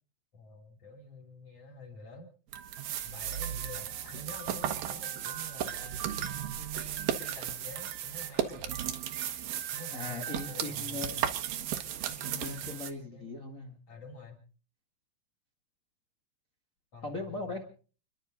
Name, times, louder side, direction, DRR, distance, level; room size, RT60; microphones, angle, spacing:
voice 1, 0.3-2.3 3.0-5.9 6.3-8.8 9.7-11.3 12.1-13.2 13.9-14.4 16.9-17.6, left 1 dB, 35° left, 5 dB, 3.5 m, -48 dB
sound 1, 2.5-12.9, right 10 dB, 70° right, 2.2 m, -35 dB
voice 2, 9.9-11.3 12.4-13.7 17.0-17.6, left 2 dB, 65° left, 0 dB, 0.8 m, -39 dB
30.0 x 11.5 x 3.9 m, 0.40 s
omnidirectional pair, 5.7 m